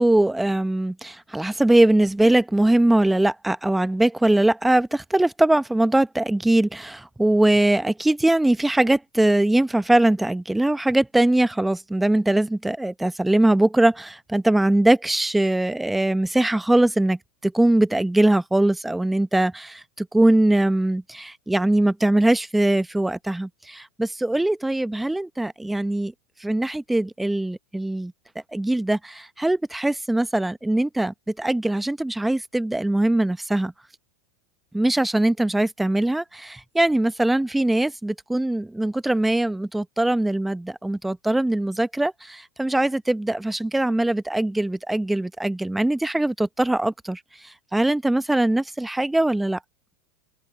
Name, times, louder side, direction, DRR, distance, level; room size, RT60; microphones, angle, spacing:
voice 1, 0.0-26.1 26.4-28.1 28.5-33.7 34.7-47.2 47.7-49.6, right 1 dB, 5° right, 0.8 m, -21 dB
open air
supercardioid pair, 130°, 2 cm